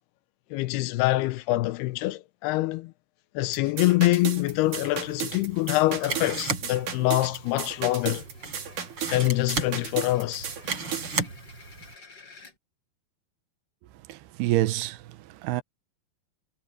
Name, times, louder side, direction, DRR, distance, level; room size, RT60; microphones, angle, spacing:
voice 1, 0.5-2.9 3.4-8.2 9.1-10.5, left 18 dB, 90° left, 2.7 m, -25 dB
sound 1, 3.5-11.1, right 8 dB, 55° right, 4.0 m, -35 dB
sound 2, 4.4-11.9, right 4 dB, 30° right, 4.7 m, -36 dB
sound 3, 7.2-12.5, left 3 dB, 25° left, 6.8 m, -53 dB
voice 2, 14.1-15.6, right 15 dB, 85° right, 2.9 m, -27 dB
omnidirectional pair, 4.6 m